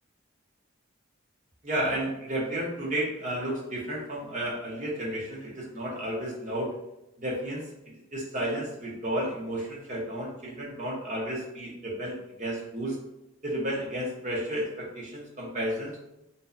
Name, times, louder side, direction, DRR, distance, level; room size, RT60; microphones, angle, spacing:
voice 1, 1.6-6.7 7.2-13.0 13.4-16.0, right 1 dB, 40° right, -3 dB, 0.7 m, -32 dB
2.6 x 2.1 x 2.4 m, 0.88 s
head